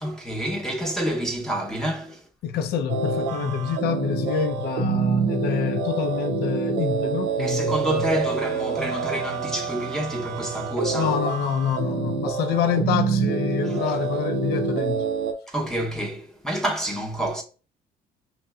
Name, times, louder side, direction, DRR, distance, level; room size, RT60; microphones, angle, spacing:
voice 1, 0.0-2.2 7.4-11.2 13.6-14.0 15.5-17.4, right 1 dB, 5° left, 0.7 m, -28 dB
voice 2, 2.4-8.2 10.9-15.1, left 8 dB, 70° left, 0.5 m, -26 dB
sound 1, 2.9-15.3, right 5 dB, 85° right, 0.5 m, -27 dB
5.4 x 2.6 x 2.3 m
cardioid pair, 110°, 17 cm